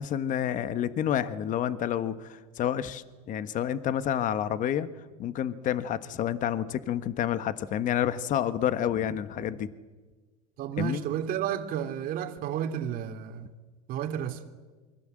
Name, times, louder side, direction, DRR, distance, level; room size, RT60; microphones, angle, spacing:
voice 1, 0.0-4.9 5.2-9.7 10.8-11.0, left 10 dB, 45° left, 1.4 m, -29 dB
voice 2, 10.6-13.5 13.9-14.4, right 9 dB, 50° right, 2.7 m, -31 dB
28.0 x 24.5 x 7.8 m
supercardioid pair, 105°, 19 cm